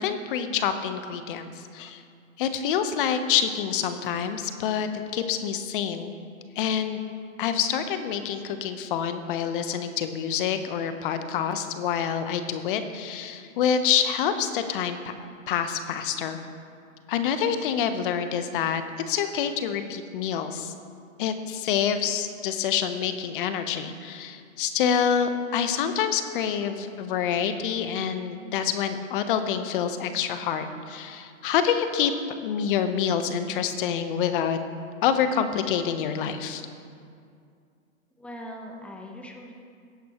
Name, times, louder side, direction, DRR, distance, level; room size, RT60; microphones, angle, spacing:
voice 1, 0.0-2.0 2.4-6.1 6.6-7.0 7.4-15.1 15.5-16.4 17.1-20.7 21.2-32.1 32.4-34.6 35.0-36.6, left 8 dB, 40° left, 9 dB, 1.0 m, -27 dB
voice 2, 38.2-39.5, equal, 5° left, 1 dB, 0.9 m, -40 dB
17.5 x 10.5 x 3.0 m, 2.3 s
hypercardioid pair, 135°, 41 cm